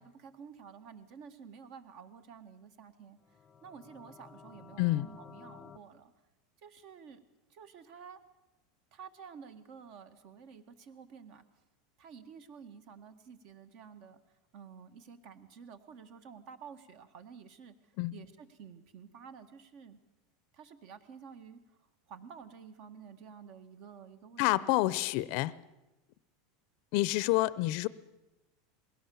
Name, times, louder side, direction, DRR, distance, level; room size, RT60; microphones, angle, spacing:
voice 1, 0.0-3.2 3.6-6.1 6.6-7.2 7.5-8.2 8.9-11.4 12.0-14.2 14.5-20.0 20.5-21.8 22.1-25.0 27.2-27.3, right 6 dB, 50° right, 10 dB, 1.7 m, -51 dB
sound 1, 3.2-5.8, left 6 dB, 20° left, 0.7 m, -53 dB
voice 2, 24.4-25.5 26.9-27.9, left 18 dB, 55° left, 19 dB, 0.6 m, -28 dB
21.0 x 17.5 x 7.1 m, 1.0 s
supercardioid pair, 145°, 0 cm